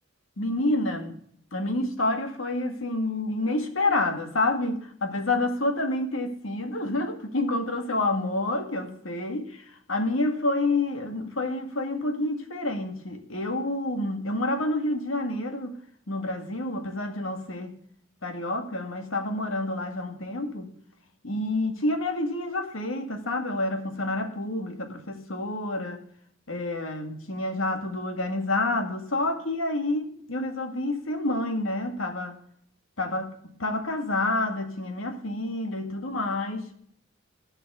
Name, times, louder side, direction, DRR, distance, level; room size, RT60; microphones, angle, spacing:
voice 1, 0.4-1.2 1.5-15.8 16.1-17.8 18.2-20.7 21.2-26.0 26.5-32.4 33.0-36.7, left 2 dB, 85° left, 2.0 m, -28 dB
14.5 x 6.0 x 6.8 m
head